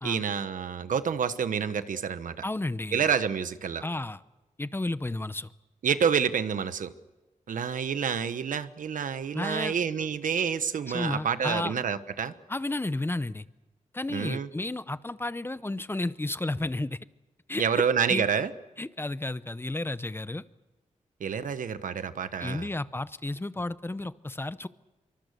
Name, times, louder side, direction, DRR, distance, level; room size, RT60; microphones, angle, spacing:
voice 1, 0.0-2.3 2.9-3.8 5.8-6.9 7.5-12.3 14.1-14.5 17.6-18.5 21.2-22.7, right 7 dB, 90° right, 12 dB, 1.2 m, -28 dB
voice 2, 2.4-3.1 3.8-4.2 4.6-5.5 9.3-9.7 10.9-11.7 12.5-13.4 13.9-17.0 17.5-17.8 18.1-18.3 18.8-20.4 22.4-24.7, left 2 dB, 15° left, 15 dB, 0.7 m, -32 dB
26.5 x 24.5 x 6.8 m, 1.1 s
wide cardioid pair, 110°, 13 cm